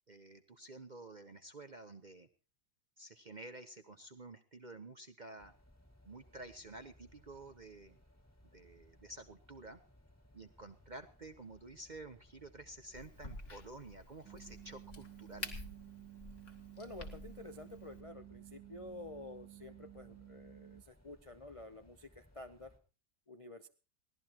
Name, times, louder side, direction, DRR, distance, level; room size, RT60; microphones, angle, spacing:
voice 1, 0.1-2.3 3.0-5.5 6.0-8.0 8.5-9.8 10.3-15.5, right 2 dB, 40° right, 9 dB, 0.6 m, -51 dB
sound 1, 5.4-22.8, left 1 dB, 10° left, 1.8 m, -64 dB
Crack, 12.9-18.0, left 2 dB, 45° left, 2.2 m, -50 dB
sound 2, 14.2-20.8, right 15 dB, 80° right, 1.7 m, -54 dB
voice 2, 16.5-22.7 23.3-23.7, left 2 dB, 60° left, 8 dB, 0.3 m, -50 dB
23.0 x 16.5 x 2.9 m, 0.34 s
omnidirectional pair, 1.9 m